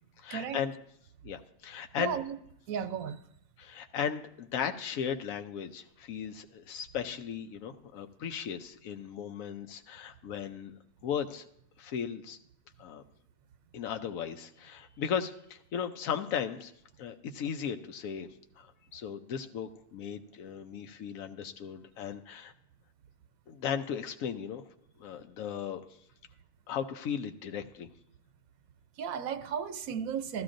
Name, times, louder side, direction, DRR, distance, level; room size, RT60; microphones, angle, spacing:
voice 1, 0.2-0.7 1.2-2.2 3.6-10.7 11.0-11.4 11.8-12.4 12.8-13.0 13.7-16.7 17.0-18.3 18.6-22.5 23.5-24.6 25.0-25.8 26.7-27.9, left 8 dB, 85° left, 6 dB, 1.1 m, -36 dB
voice 2, 2.0-2.4 2.7-3.2 29.0-30.4, right 7 dB, 85° right, 11 dB, 1.1 m, -34 dB
15.0 x 13.0 x 2.6 m, 0.74 s
omnidirectional pair, 1.4 m